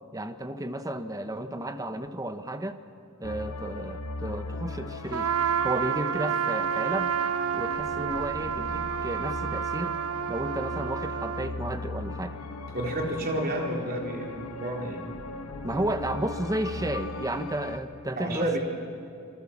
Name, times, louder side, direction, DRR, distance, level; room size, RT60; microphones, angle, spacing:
voice 1, 0.1-2.8 3.2-5.3 5.6-7.2 7.5-10.0 10.3-12.4 15.6-18.6, right 1 dB, 15° right, 9 dB, 1.1 m, -33 dB
sound 1, 3.2-17.8, left 2 dB, 85° left, 1.6 m, -38 dB
Trumpet, 5.1-11.5, right 8 dB, 85° right, 0.9 m, -29 dB
voice 2, 12.7-15.0 18.2-18.6, right 1 dB, 45° right, 0 dB, 4.0 m, -30 dB
27.0 x 22.5 x 7.4 m, 2.5 s
head